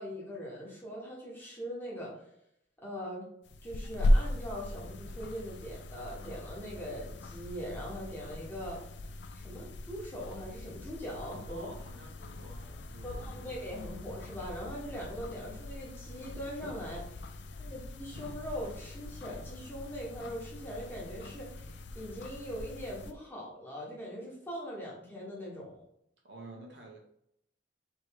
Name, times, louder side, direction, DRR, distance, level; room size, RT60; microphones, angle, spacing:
voice 1, 0.0-2.1 2.8-3.3 3.6-8.8 9.3-11.7 13.0-25.8, equal, 10° left, -5 dB, 1.3 m, -41 dB
sound 1, 3.5-23.1, left 1 dB, 70° left, 0.4 m, -37 dB
voice 2, 11.5-13.6 17.5-17.8 26.2-27.0, right 2 dB, 65° right, -1 dB, 1.2 m, -51 dB
3.4 x 3.1 x 4.6 m, 0.75 s
head